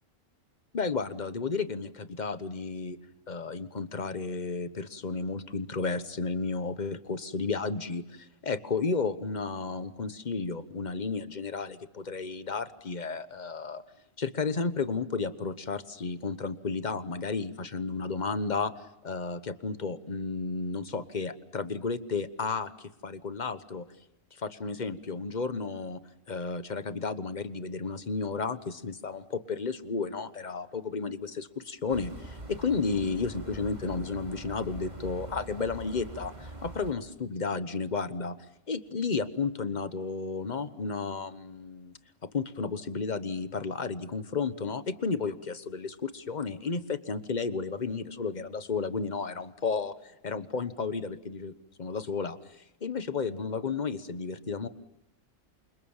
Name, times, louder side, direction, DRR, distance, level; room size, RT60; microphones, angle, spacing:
voice 1, 0.7-3.0 3.3-13.8 14.2-18.7 19.0-23.8 24.4-26.0 26.3-38.4 38.7-41.9 42.3-51.5 51.8-54.7, left 4 dB, 35° left, 12 dB, 1.2 m, -33 dB
sound 1, 31.9-36.9, right 2 dB, 30° right, 3.0 m, -43 dB
28.5 x 25.5 x 7.3 m, 0.86 s
omnidirectional pair, 1.3 m